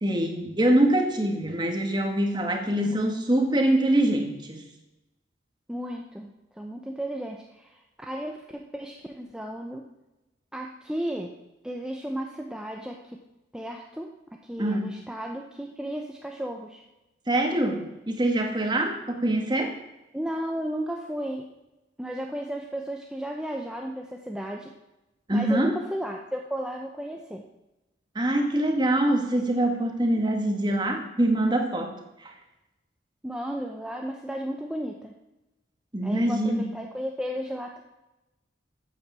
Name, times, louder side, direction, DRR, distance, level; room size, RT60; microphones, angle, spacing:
voice 1, 0.0-4.6 14.6-14.9 17.3-19.7 25.3-25.8 28.1-31.9 32.2-32.3 35.9-36.7, right 1 dB, 25° right, 4 dB, 1.7 m, -24 dB
voice 2, 5.7-9.8 10.5-11.3 11.6-13.0 13.5-14.1 14.4-16.8 20.1-21.5 22.0-24.7 25.3-27.4 33.2-35.1 36.0-37.8, equal, 5° right, 1 dB, 0.8 m, -34 dB
14.0 x 8.5 x 6.2 m, 0.98 s
head